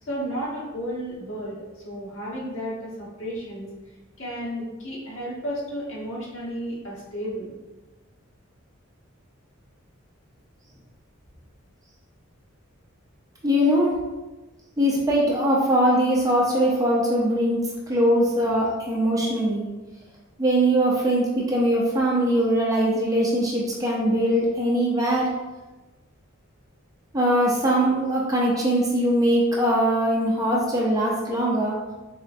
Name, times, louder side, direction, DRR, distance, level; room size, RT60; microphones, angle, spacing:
voice 1, 0.1-3.7 4.2-7.5, equal, 65° left, -6 dB, 1.4 m, -33 dB
voice 2, 13.4-14.0 14.8-17.6 17.9-19.6 20.4-25.3 27.1-31.7, equal, 15° right, -4 dB, 0.7 m, -21 dB
4.2 x 3.4 x 2.6 m, 1.1 s
head